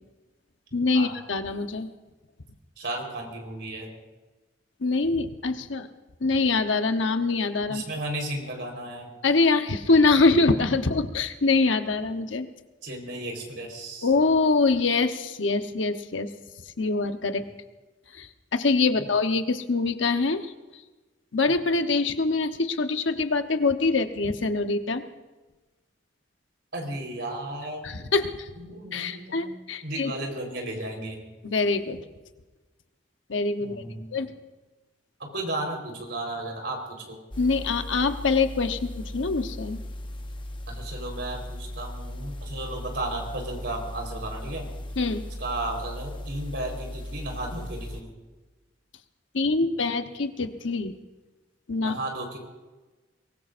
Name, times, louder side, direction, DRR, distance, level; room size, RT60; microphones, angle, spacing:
voice 1, 0.7-1.9 4.8-5.9 6.2-7.8 9.2-12.5 14.0-16.3 16.8-17.4 18.1-20.5 21.3-25.0 27.8-28.5 28.9-30.1 31.4-32.1 33.3-33.8 34.1-34.3 37.4-39.8 45.0-45.2 49.3-50.9 51.7-51.9, left 3 dB, 85° left, 7 dB, 1.0 m, -24 dB
voice 2, 2.8-3.9 7.7-9.1 12.8-14.1 26.7-27.9 28.6-29.5 29.8-31.2 33.6-34.1 35.2-37.2 40.7-44.7 45.4-48.1 51.8-52.4, right 1 dB, 65° right, 1 dB, 4.2 m, -34 dB
sound 1, 37.3-48.0, left 1 dB, 25° left, 1.0 m, -37 dB
23.0 x 19.5 x 2.6 m, 1.2 s
head